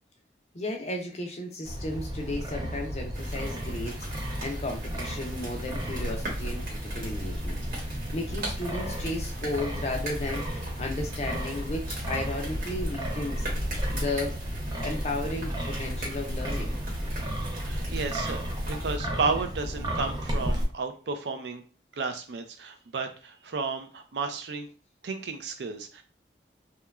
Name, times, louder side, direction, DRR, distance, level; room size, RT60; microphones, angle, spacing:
voice 1, 0.5-7.6 7.9-13.5 13.9-14.4 14.8-16.8, left 2 dB, 35° left, 1 dB, 0.5 m, -34 dB
Wind, 1.6-20.6, equal, 25° right, 0.5 m, -33 dB
sound 1, 3.1-19.0, right 1 dB, 55° right, 1.1 m, -40 dB
voice 2, 17.5-21.6 22.0-24.7 25.0-26.0, right 4 dB, 75° right, 7 dB, 0.4 m, -33 dB
2.9 x 2.2 x 2.3 m, 0.37 s
head